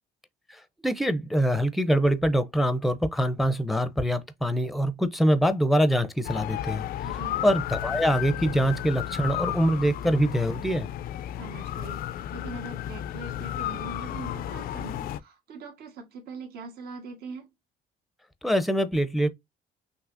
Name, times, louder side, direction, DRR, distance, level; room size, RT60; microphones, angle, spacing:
voice 1, 0.5-6.9 7.4-10.9 18.4-19.3, equal, ahead, 0.6 m, -24 dB
sound 1, 6.2-15.2, left 12 dB, 60° left, 0.4 m, -33 dB
voice 2, 7.0-7.4 11.4-17.5, right 4 dB, 70° right, 1.4 m, -42 dB
6.0 x 2.8 x 2.5 m
cardioid pair, 110°, 17 cm